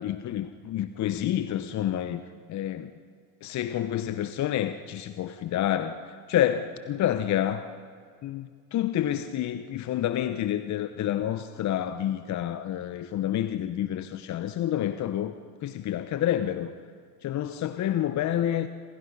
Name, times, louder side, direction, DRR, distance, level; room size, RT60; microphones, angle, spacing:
voice 1, 0.0-2.2 2.5-2.9 3.4-7.7 8.2-15.4 15.6-16.7 17.2-18.7, left 11 dB, 35° left, 10 dB, 1.1 m, -28 dB
27.5 x 26.5 x 5.6 m, 2.1 s
hypercardioid pair, 80°, 46 cm